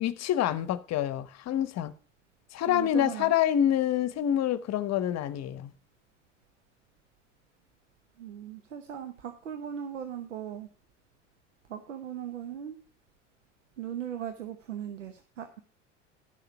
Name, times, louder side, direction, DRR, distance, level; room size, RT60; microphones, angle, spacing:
voice 1, 0.0-1.9 2.5-5.7, left 10 dB, 45° left, 0.9 m, -27 dB
voice 2, 2.7-3.3 8.2-10.7 11.7-12.8 13.8-15.6, right 9 dB, 85° right, 1.1 m, -38 dB
11.0 x 6.7 x 6.0 m
hypercardioid pair, 70°, 36 cm